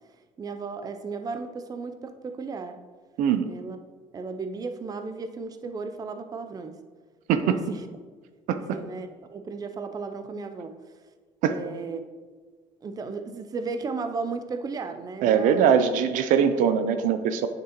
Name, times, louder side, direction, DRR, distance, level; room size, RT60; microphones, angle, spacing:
voice 1, 0.4-2.8 3.5-3.8 4.1-6.8 7.4-7.9 8.5-10.7 11.5-12.0 12.8-15.8, right 4 dB, 30° right, 8 dB, 0.5 m, -35 dB
voice 2, 3.2-3.5 7.3-7.6 8.5-8.8 11.4-11.6 15.2-17.5, right 7 dB, 75° right, 10 dB, 0.5 m, -22 dB
8.4 x 6.0 x 2.9 m, 1.4 s
cardioid pair, 110°, 13 cm